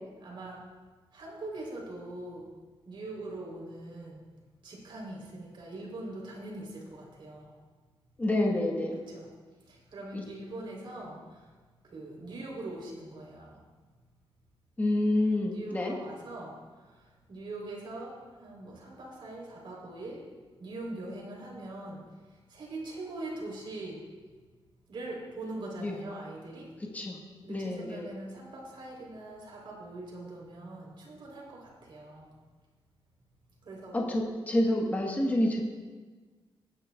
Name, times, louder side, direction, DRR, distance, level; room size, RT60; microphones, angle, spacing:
voice 1, 0.2-0.6 1.1-2.5 2.8-4.2 4.6-7.5 8.9-9.3 9.6-11.5 11.8-13.6 15.5-20.2 20.6-24.0 24.9-26.7 27.4-32.3 33.6-34.2, right 2 dB, 55° right, -3 dB, 3.5 m, -42 dB
voice 2, 8.2-9.0 10.1-10.2 14.8-16.0 25.8-26.0 26.9-27.2 27.5-28.2 33.9-35.6, left 1 dB, 15° left, -1 dB, 1.2 m, -28 dB
19.0 x 10.0 x 2.3 m, 1.4 s
wide cardioid pair, 155°, 10 cm